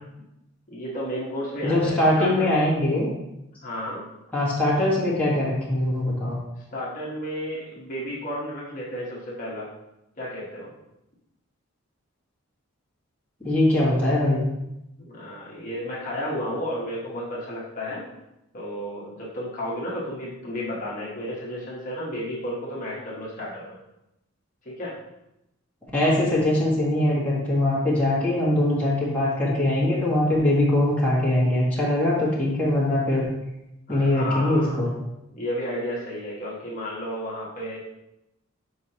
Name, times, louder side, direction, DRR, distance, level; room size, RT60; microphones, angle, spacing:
voice 1, 0.7-2.6 3.6-4.1 6.6-9.7 10.2-10.7 15.0-18.0 18.5-23.7 24.6-25.0 33.9-34.7 35.3-37.8, equal, 35° left, -6 dB, 1.3 m, -32 dB
voice 2, 1.6-3.1 4.3-6.4 13.4-14.4 25.9-33.3 33.9-34.9, left 1 dB, 5° left, -8 dB, 1.6 m, -22 dB
7.2 x 4.8 x 2.9 m, 0.88 s
head